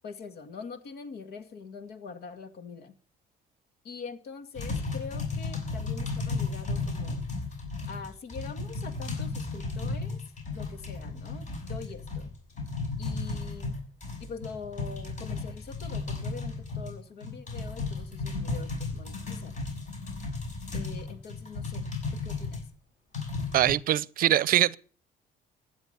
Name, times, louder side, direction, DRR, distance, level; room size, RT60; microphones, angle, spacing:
voice 1, 0.0-2.9 3.8-7.2 7.9-10.2 10.5-12.3 13.0-13.8 14.2-19.6 20.7-21.8 22.1-22.6, left 5 dB, 70° left, 2.1 m, -43 dB
sound 1, 4.6-22.6 23.1-23.7, left 3 dB, 45° left, 5.8 m, -34 dB
voice 2, 23.5-24.8, right 13 dB, 60° right, 0.6 m, -23 dB
15.5 x 9.9 x 6.8 m
cardioid pair, 110°, 17 cm